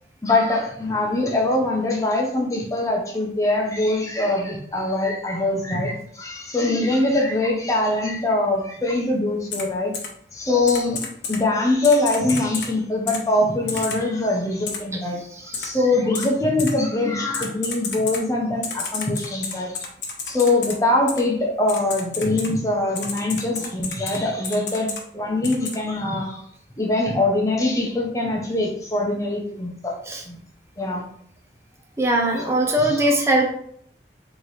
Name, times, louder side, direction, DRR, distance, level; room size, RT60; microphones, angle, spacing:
voice 1, 0.2-9.9 10.3-11.0 11.3-15.2 15.6-19.7 20.3-26.4 26.8-29.9 30.3-30.4 30.8-31.0 32.3-32.4 32.8-33.1, left 2 dB, 20° left, 0 dB, 0.7 m, -23 dB
Typing, 9.5-9.6 9.9-10.1 10.7-11.4 11.8-12.7 13.1-13.2 13.7-14.0 14.7-14.8 15.5-15.7 16.1-16.3 16.6-16.7 17.3-18.2 18.6-20.7 21.1-21.2 21.7-22.5 23.0-24.2 24.4-25.0 25.4-25.8, left 5 dB, 90° left, 0.9 m, -30 dB
voice 2, 15.3-15.7 30.1-30.2 32.0-33.5, right 1 dB, 15° right, 1 dB, 0.5 m, -21 dB
4.1 x 3.0 x 3.1 m, 0.64 s
head